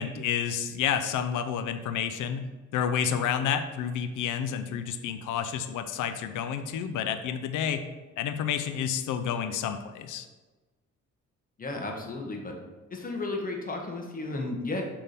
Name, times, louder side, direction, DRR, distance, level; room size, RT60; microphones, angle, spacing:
voice 1, 0.0-7.9 8.2-10.2, left 8 dB, 80° left, 9 dB, 0.6 m, -30 dB
voice 2, 11.6-12.5 12.9-14.8, left 2 dB, 30° left, 1 dB, 1.5 m, -33 dB
6.8 x 3.7 x 5.1 m, 1.2 s
cardioid pair, 90°, 30 cm